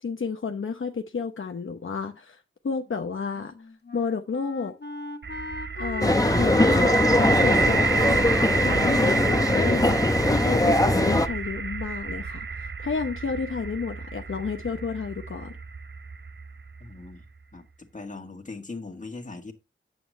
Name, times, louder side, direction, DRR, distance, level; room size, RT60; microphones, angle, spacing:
voice 1, 0.0-3.6 3.9-4.7 5.8-8.2 8.6-10.0 10.3-15.6, left 5 dB, 70° left, 0.9 m, -31 dB
Wind instrument woodwind instrument, 3.3-10.2, left 3 dB, 55° left, 1.2 m, -40 dB
sound 1, 5.2-17.1, right 4 dB, 60° right, 0.7 m, -29 dB
sound 2, 6.0-11.3, left 1 dB, 15° left, 0.8 m, -21 dB
voice 2, 16.8-17.2 17.5-19.5, left 3 dB, 35° left, 1.8 m, -40 dB
9.3 x 8.0 x 3.1 m
wide cardioid pair, 70°, 21 cm